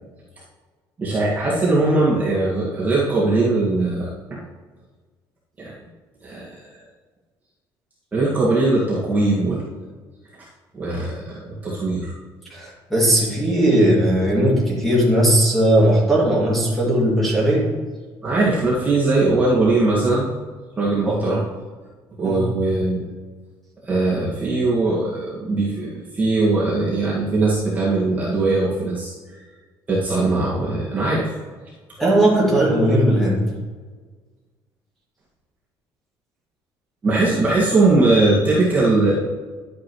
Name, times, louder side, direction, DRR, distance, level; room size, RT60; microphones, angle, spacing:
voice 1, 1.0-4.4 5.6-5.7 6.2-6.8 8.1-9.7 10.7-12.1 18.2-20.3 20.8-21.4 22.2-23.1 23.8-29.4 29.9-31.3 37.0-39.1, right 2 dB, 20° right, -7 dB, 1.9 m, -20 dB
voice 2, 12.5-17.7 21.0-21.2 22.2-22.4 32.0-33.5, right 1 dB, 5° left, -5 dB, 2.5 m, -18 dB
11.0 x 8.4 x 3.2 m, 1.4 s
cardioid pair, 170°, 8 cm